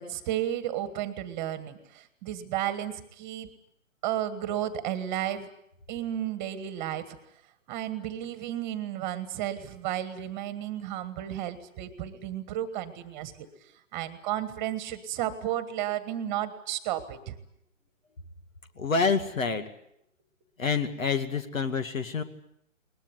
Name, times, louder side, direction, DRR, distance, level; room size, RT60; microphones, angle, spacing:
voice 1, 0.0-3.5 4.0-5.5 5.9-7.2 7.7-13.5 13.9-17.4, right 12 dB, 25° right, 12 dB, 1.6 m, -33 dB
voice 2, 18.8-19.6 20.6-22.2, left 5 dB, 75° left, 9 dB, 2.3 m, -27 dB
21.5 x 20.5 x 9.4 m, 0.73 s
figure-of-eight pair, 135°, 40 cm